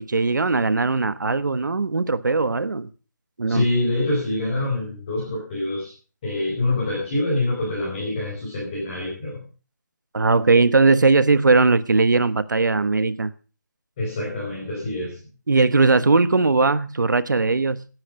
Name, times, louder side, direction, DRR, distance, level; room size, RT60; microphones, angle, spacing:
voice 1, 0.0-2.9 3.4-3.7 10.1-13.3 15.5-17.9, right 3 dB, 85° right, 1.2 m, -19 dB
voice 2, 3.5-5.9 6.2-9.4 14.0-15.2, left 2 dB, 20° left, 4.7 m, -25 dB
17.5 x 9.6 x 5.1 m
hypercardioid pair, 175°, 10 cm